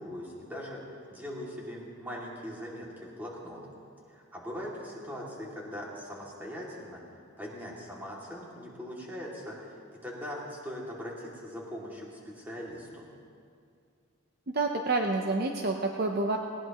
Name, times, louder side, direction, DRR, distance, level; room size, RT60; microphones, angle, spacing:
voice 1, 0.0-3.6 4.1-7.0 7.4-13.1, equal, 10° right, -4 dB, 2.3 m, -41 dB
voice 2, 14.5-16.4, right 3 dB, 45° right, 3 dB, 0.7 m, -28 dB
19.0 x 18.0 x 3.0 m, 2.3 s
head